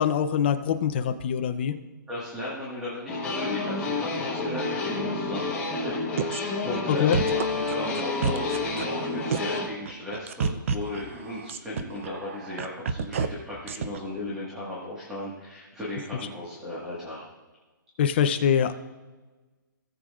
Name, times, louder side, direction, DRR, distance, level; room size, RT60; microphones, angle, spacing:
voice 1, 0.0-1.7 7.0-7.2 18.0-18.7, left 8 dB, 30° left, 9 dB, 0.6 m, -23 dB
voice 2, 2.1-6.1 6.4-17.2, left 1 dB, 5° right, -8 dB, 1.6 m, -36 dB
sound 1, 3.1-9.7, left 3 dB, 10° left, 1.2 m, -30 dB
sound 2, 6.2-6.4 6.7-6.8 7.1-9.0 9.3-9.6 9.9-13.3 13.7-14.0, right 6 dB, 35° right, 0.5 m, -29 dB
17.5 x 7.7 x 2.4 m, 1.2 s
hypercardioid pair, 170°, 11 cm